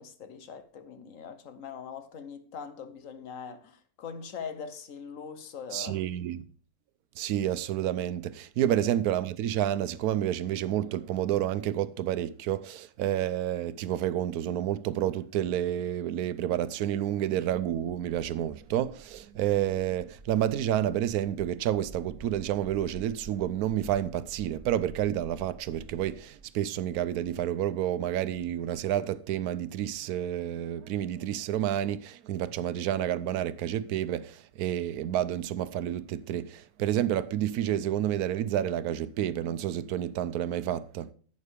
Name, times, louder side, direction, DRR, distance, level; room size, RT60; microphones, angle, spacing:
voice 1, 0.0-6.0 8.7-8.8, left 6 dB, 65° left, 1.2 m, -42 dB
voice 2, 5.7-6.4 7.2-41.1, right 11 dB, 85° right, 1.1 m, -29 dB
sound 1, 17.7-27.8 28.1-28.7, right 3 dB, 25° right, 1.5 m, -51 dB
11.0 x 8.3 x 3.4 m
omnidirectional pair, 1.5 m